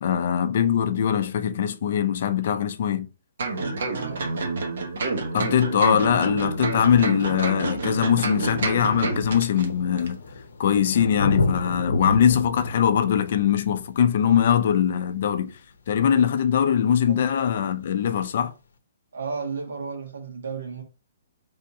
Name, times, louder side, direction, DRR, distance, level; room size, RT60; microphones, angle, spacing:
voice 1, 0.0-3.1 5.3-10.2 10.6-15.6 15.9-18.5, left 8 dB, 40° left, 0.4 m, -22 dB
sound 1, 3.4-9.7 10.0-10.1, right 3 dB, 60° right, 0.9 m, -28 dB
voice 2, 3.6-4.5 17.1-17.2 19.1-20.8, right 5 dB, 80° right, 1.6 m, -34 dB
Thunder, 6.9-7.0 7.9-8.0 8.2-15.6 17.2-17.3, left 2 dB, 75° left, 0.6 m, -31 dB
3.4 x 2.8 x 4.7 m
hypercardioid pair, 180°, 0 cm